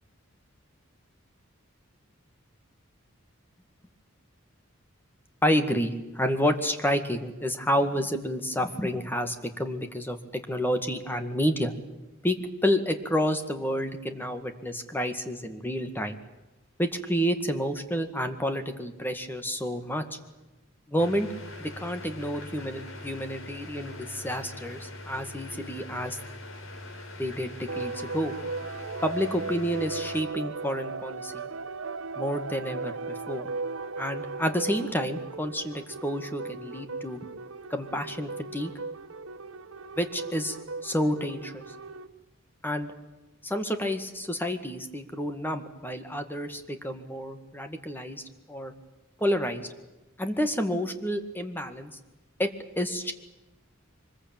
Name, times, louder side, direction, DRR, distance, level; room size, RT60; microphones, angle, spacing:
voice 1, 5.4-11.7 12.2-12.4 12.6-16.2 16.8-20.2 20.9-21.3 21.6-26.2 27.2-28.3 29.0-31.5 32.2-33.5 34.0-37.2 37.7-38.7 40.0-40.6 40.8-41.6 42.6-42.9 43.4-48.2 48.5-48.7 49.2-49.7 50.2-51.9 52.4-52.5 52.8-53.1, equal, 10° left, 7 dB, 2.0 m, -29 dB
sound 1, 21.0-30.2, left 1 dB, 75° left, 3.7 m, -42 dB
sound 2, 27.7-42.1, right 3 dB, 85° right, 1.0 m, -37 dB
24.5 x 21.5 x 9.0 m, 1.0 s
head